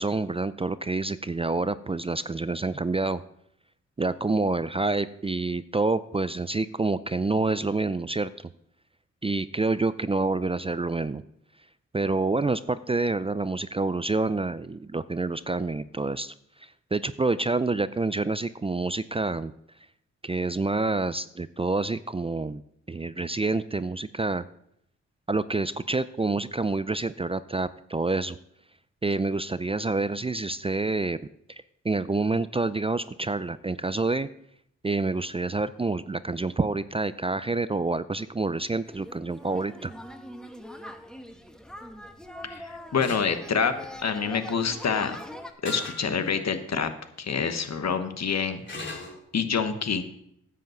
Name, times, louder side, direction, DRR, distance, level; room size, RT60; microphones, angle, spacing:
voice 1, 0.0-3.2 4.0-8.3 9.2-11.2 11.9-16.3 16.6-19.5 20.2-22.6 22.9-24.4 25.3-28.4 29.0-31.2 31.5-34.3 34.8-39.9, right 3 dB, 20° right, 15 dB, 0.4 m, -27 dB
sound 1, 38.9-45.5, equal, ahead, 1.3 m, -43 dB
voice 2, 42.4-43.7 44.0-45.2 45.6-46.9 47.2-48.6 49.3-50.0, left 6 dB, 60° left, 9 dB, 1.2 m, -27 dB
sound 2, 43.0-43.3 45.7-46.0 46.6-46.7 48.7-49.2, left 2 dB, 40° left, 2.9 m, -37 dB
10.0 x 5.6 x 7.8 m, 0.74 s
cardioid pair, 55°, 30 cm